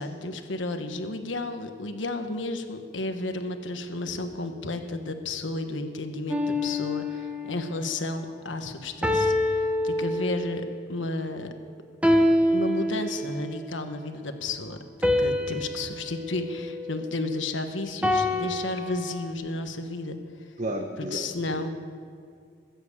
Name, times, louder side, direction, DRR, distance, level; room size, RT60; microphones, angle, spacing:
voice 1, 0.0-11.5 12.5-20.2 21.1-21.7, left 2 dB, 80° left, 7 dB, 1.3 m, -32 dB
sound 1, 6.3-7.6 9.0-10.6 12.0-13.5 15.0-17.4 18.0-19.3, left 1 dB, 5° right, 1.2 m, -26 dB
voice 2, 20.6-21.7, right 1 dB, 40° right, 2 dB, 1.1 m, -33 dB
21.0 x 8.0 x 8.4 m, 2.2 s
head